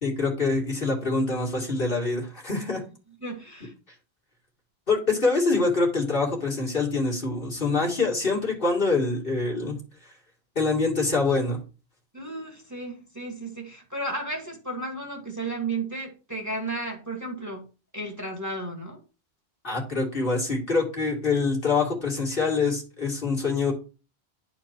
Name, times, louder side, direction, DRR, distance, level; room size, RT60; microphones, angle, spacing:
voice 1, 0.0-2.8 4.9-9.8 10.6-11.6 19.6-23.7, left 3 dB, 55° left, -1 dB, 2.4 m, -25 dB
voice 2, 3.2-3.7 12.1-17.7 17.9-19.0, right 2 dB, 15° right, 1 dB, 1.9 m, -33 dB
10.5 x 4.5 x 4.4 m, 0.34 s
omnidirectional pair, 1.1 m